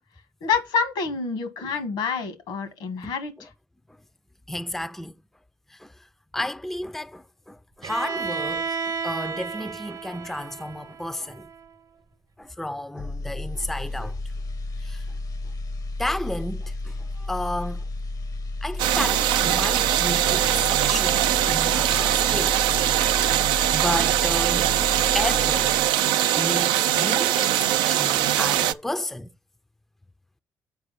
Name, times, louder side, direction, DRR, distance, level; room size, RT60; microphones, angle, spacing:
voice 1, 0.4-3.5, left 5 dB, 75° left, 1.5 m, -27 dB
voice 2, 3.0-3.5 3.9-4.0 4.5-5.1 5.7-6.1 6.3-11.5 12.4-14.2 14.8-15.1 16.0-17.8 18.6-22.6 23.7-24.7 25.0-25.8 26.4-29.3, left 1 dB, 5° left, 0.5 m, -32 dB
Bowed string instrument, 7.8-11.7, right 5 dB, 50° right, 0.9 m, -32 dB
sound 1, 13.0-26.1 26.4-26.6, left 2 dB, 50° left, 0.8 m, -32 dB
sound 2, 18.8-28.7, right 12 dB, 75° right, 0.4 m, -22 dB
7.3 x 4.7 x 5.7 m
hypercardioid pair, 45°, 8 cm